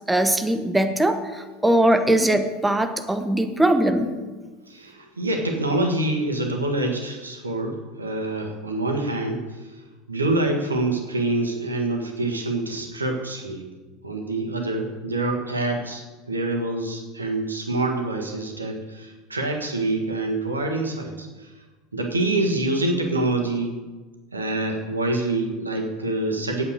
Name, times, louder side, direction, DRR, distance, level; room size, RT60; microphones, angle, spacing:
voice 1, 0.1-4.1, right 1 dB, 5° right, 7 dB, 1.0 m, -21 dB
voice 2, 4.7-9.7 10.1-13.6 14.0-21.5 21.9-23.8 24.3-26.6, right 2 dB, 80° right, 3 dB, 1.6 m, -26 dB
8.8 x 8.6 x 6.6 m, 1.3 s
figure-of-eight pair, 75°, 0 cm